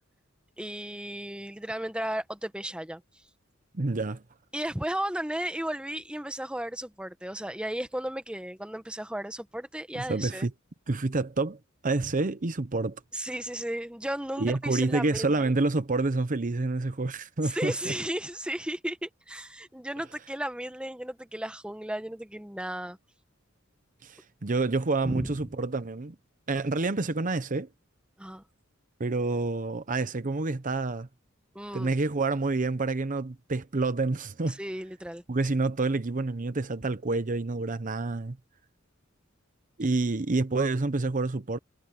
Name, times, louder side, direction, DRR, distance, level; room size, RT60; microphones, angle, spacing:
voice 1, 0.6-3.0 4.5-10.5 13.1-15.5 17.4-23.0 25.0-25.3 28.2-28.4 31.5-31.9 34.5-35.2, right 1 dB, 5° right, 1.2 m, -34 dB
voice 2, 3.7-4.2 9.9-10.5 10.9-13.0 14.4-17.9 24.0-26.1 26.5-27.7 29.0-31.1 31.7-34.6 35.3-38.4 39.8-41.6, right 3 dB, 40° right, 0.8 m, -28 dB
head